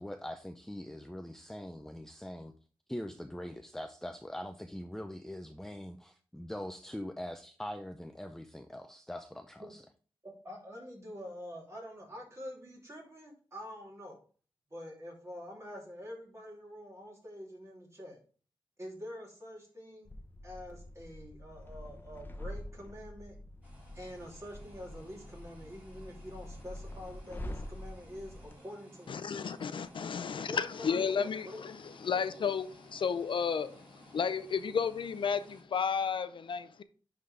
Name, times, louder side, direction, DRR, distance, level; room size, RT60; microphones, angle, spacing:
voice 1, 0.0-2.5 2.9-9.8, left 1 dB, 5° left, 0.5 m, -42 dB
voice 2, 10.2-14.2 14.7-18.2 18.8-20.1 20.4-23.3 23.9-29.2 30.3-31.6 32.1-32.4, equal, 30° right, 2.9 m, -46 dB
sound 1, 20.0-28.5, left 1 dB, 20° left, 0.9 m, -46 dB
sound 2, 23.6-35.6, equal, 15° right, 4.2 m, -58 dB
voice 3, 29.1-31.7 32.0-36.8, left 6 dB, 65° left, 0.5 m, -33 dB
10.5 x 3.9 x 3.4 m
wide cardioid pair, 105°, 9 cm